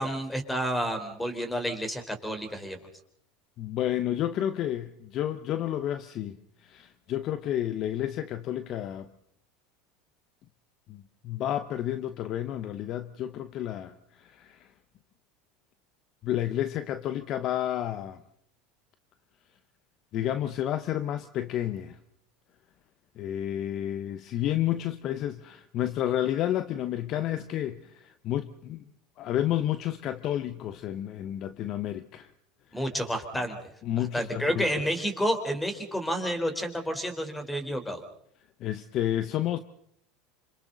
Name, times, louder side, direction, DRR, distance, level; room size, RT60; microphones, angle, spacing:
voice 1, 0.0-2.8 32.7-33.6 34.0-38.0, equal, 5° left, 4.0 m, -30 dB
voice 2, 3.6-9.1 10.9-14.7 16.2-18.2 20.1-22.0 23.2-28.8 29.2-32.3 32.7-32.8 33.8-34.7 38.6-39.6, left 12 dB, 50° left, 0.9 m, -31 dB
27.5 x 25.5 x 4.0 m
supercardioid pair, 100°, 0 cm